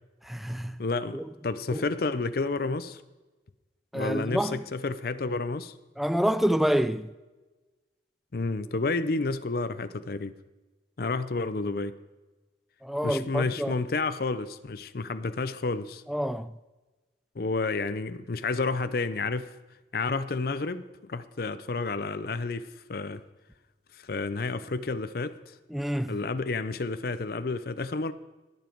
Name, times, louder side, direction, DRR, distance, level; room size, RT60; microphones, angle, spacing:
voice 1, 0.2-0.8 1.1-1.3 1.7-1.8 3.9-4.6 6.0-7.1 12.8-13.7 16.1-16.5 25.7-26.2, equal, ahead, 0.3 m, -27 dB
voice 2, 0.8-3.0 3.9-5.7 8.3-10.4 11.0-12.0 13.0-16.0 17.3-19.5 19.9-23.2 23.9-25.6 26.1-28.1, left 3 dB, 55° left, 0.6 m, -30 dB
20.5 x 7.2 x 4.5 m
head